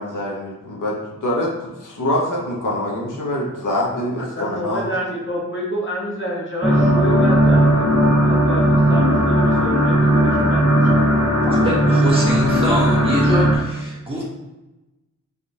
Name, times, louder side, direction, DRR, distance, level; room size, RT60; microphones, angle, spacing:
voice 1, 0.0-4.9, left 1 dB, 70° left, -3 dB, 0.7 m, -25 dB
voice 2, 4.2-7.9 8.2-11.0, equal, 40° left, -3 dB, 0.8 m, -28 dB
sound 1, 6.6-13.6, equal, 60° right, 1.3 m, -16 dB
voice 3, 11.4-14.2, equal, 15° right, -6 dB, 1.0 m, -24 dB
3.4 x 2.4 x 2.7 m, 1.0 s
wide cardioid pair, 80°, 32 cm